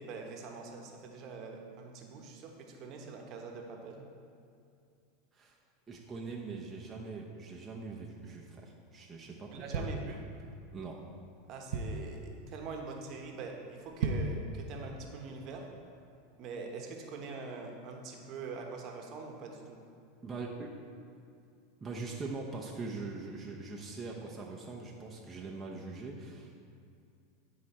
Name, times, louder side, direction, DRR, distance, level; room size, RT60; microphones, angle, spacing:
voice 1, 0.0-4.1 9.5-10.2 11.5-12.2 12.5-15.7 16.4-19.9, right 4 dB, 45° right, 2 dB, 1.1 m, -44 dB
voice 2, 5.9-10.1 10.7-11.0 20.2-20.7 21.8-26.5, right 3 dB, 20° right, -2 dB, 0.8 m, -42 dB
sound 1, 9.5-10.7 11.2-11.3 11.4-12.2 12.7-12.9 13.2-13.3 13.8-14.5 14.9-15.0, right 3 dB, 75° right, 0.7 m, -35 dB
9.7 x 4.8 x 4.3 m, 2.4 s
supercardioid pair, 115°, 0 cm